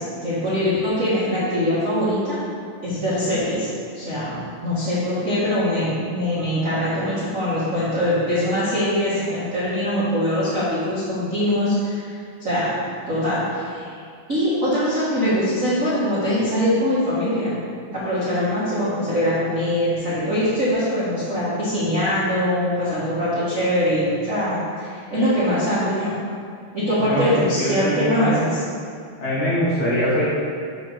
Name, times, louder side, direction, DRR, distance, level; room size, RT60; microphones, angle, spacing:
voice 1, 0.0-2.4 2.8-3.7 3.9-12.1 12.4-12.7 13.1-13.9 14.3-17.5 17.9-26.1 26.7-28.6, left 1 dB, 80° right, -12 dB, 0.7 m, -22 dB
voice 2, 27.5-28.4 29.2-30.2, equal, 50° left, -8 dB, 3.0 m, -22 dB
7.6 x 4.4 x 6.5 m, 2.3 s
omnidirectional pair, 4.6 m